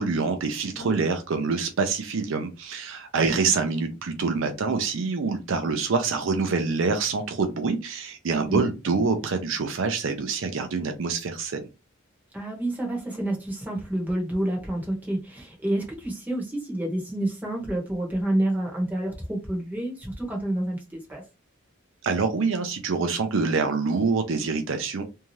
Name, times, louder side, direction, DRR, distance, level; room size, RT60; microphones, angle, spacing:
voice 1, 0.0-11.7 22.0-25.0, right 4 dB, 65° right, 0.5 m, -26 dB
voice 2, 12.3-21.2, right 1 dB, 10° right, 1.1 m, -29 dB
2.7 x 2.3 x 3.1 m
head